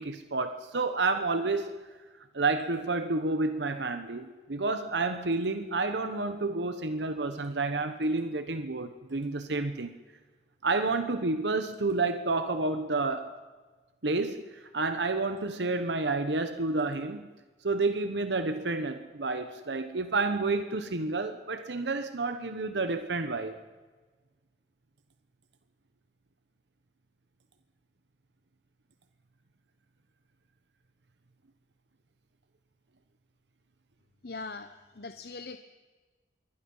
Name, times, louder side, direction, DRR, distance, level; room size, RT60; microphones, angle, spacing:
voice 1, 0.0-1.7 2.3-9.9 10.6-13.3 14.0-17.3 17.6-23.6, right 3 dB, 85° right, 9 dB, 1.2 m, -30 dB
voice 2, 34.2-35.6, left 3 dB, 60° left, 9 dB, 0.9 m, -41 dB
26.5 x 23.0 x 5.6 m, 1.3 s
head